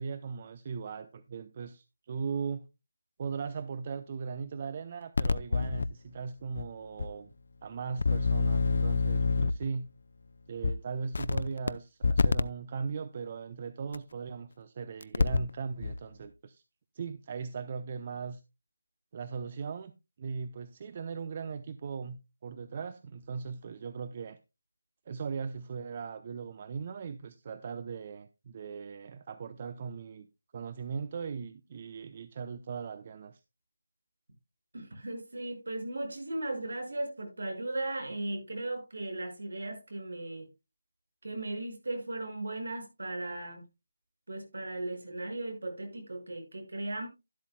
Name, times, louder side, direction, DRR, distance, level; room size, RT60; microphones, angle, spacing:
voice 1, 0.0-2.7 3.2-7.3 7.6-9.9 10.5-16.6 16.9-18.4 19.1-19.9 20.2-24.4 25.1-30.3 30.5-33.4, right 5 dB, 35° right, 0.8 m, -38 dB
sound 1, 5.2-5.9 6.6-6.7 7.0-7.1 8.0-9.7 10.6-10.7 11.1-11.7 12.0-12.4 13.9-14.0 15.0-15.5 15.8-15.9, left 4 dB, 60° left, 0.6 m, -26 dB
voice 2, 34.7-40.5 41.2-43.6 44.3-47.1, right 2 dB, 70° right, 6.1 m, -37 dB
12.5 x 12.0 x 2.2 m
figure-of-eight pair, 155°, 0 cm